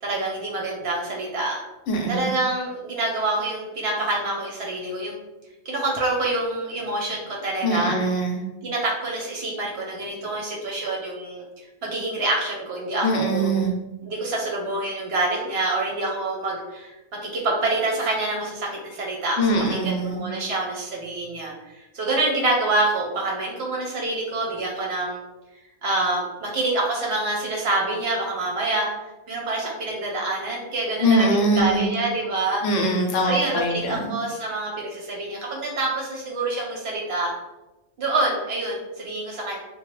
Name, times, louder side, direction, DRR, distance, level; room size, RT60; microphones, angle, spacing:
voice 1, 0.0-1.6 2.1-5.1 5.6-7.9 8.6-11.4 11.8-13.5 14.0-16.9 17.3-19.4 19.7-25.2 25.8-28.9 29.3-32.6 33.2-37.3 38.0-39.6, right 2 dB, 60° right, -2 dB, 0.7 m, -26 dB
voice 2, 1.9-2.3 7.6-8.4 13.0-13.7 19.4-20.3 31.0-31.9 32.6-34.2, right 1 dB, 70° left, 1 dB, 0.8 m, -22 dB
3.0 x 2.1 x 3.1 m, 1.1 s
omnidirectional pair, 1.4 m